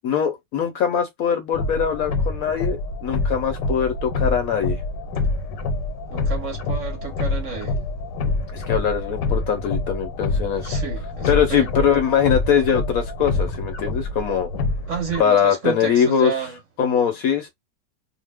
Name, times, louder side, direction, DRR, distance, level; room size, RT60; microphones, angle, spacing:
voice 1, 0.0-4.8 8.5-10.7 11.3-14.5 15.2-16.3 16.8-17.5, left 8 dB, 70° left, 0.9 m, -22 dB
sound 1, 1.5-15.2, left 2 dB, 85° left, 1.3 m, -26 dB
voice 2, 6.1-7.8 10.6-11.9 14.9-16.6, right 5 dB, 55° right, 1.0 m, -31 dB
2.8 x 2.1 x 3.3 m
omnidirectional pair, 1.9 m